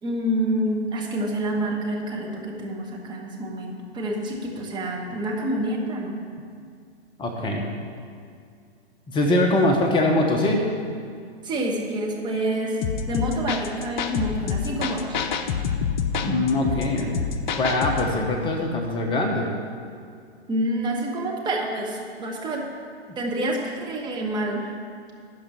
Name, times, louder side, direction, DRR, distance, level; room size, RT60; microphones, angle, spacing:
voice 1, 0.0-6.2 11.4-15.2 20.5-22.6 23.2-24.7, right 1 dB, 15° right, -1 dB, 1.3 m, -27 dB
voice 2, 7.2-7.6 9.1-10.7 16.2-19.5, left 1 dB, 15° left, 1 dB, 1.0 m, -23 dB
sound 1, 12.8-18.1, left 6 dB, 45° left, 0.9 m, -27 dB
12.5 x 5.1 x 8.4 m, 2.3 s
hypercardioid pair, 130°, 33 cm